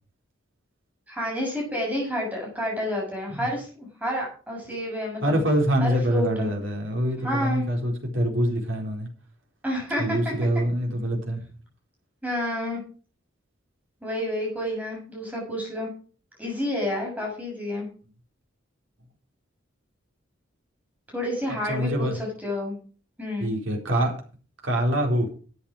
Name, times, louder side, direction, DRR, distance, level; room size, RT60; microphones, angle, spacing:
voice 1, 1.1-5.4 5.8-6.5 7.2-7.6 9.6-10.6 12.2-12.8 14.0-15.9 16.4-17.9 21.1-22.8 23.2-23.5, left 1 dB, 10° right, -2 dB, 6.6 m, -29 dB
voice 2, 5.2-9.1 10.0-11.4 21.7-22.2 23.4-24.1 24.6-25.3, equal, 70° right, 1 dB, 4.2 m, -25 dB
12.5 x 8.9 x 5.0 m, 0.39 s
head